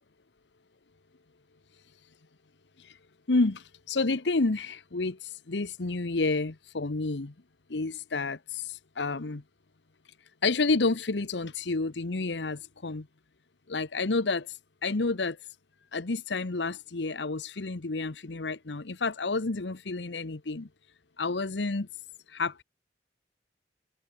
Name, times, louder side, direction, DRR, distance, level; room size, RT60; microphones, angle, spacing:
voice 1, 3.3-7.3 7.7-9.4 10.4-13.1 13.7-15.4 15.9-20.7 21.2-21.9 22.3-22.6, left 3 dB, 85° left, 1.0 m, -30 dB
head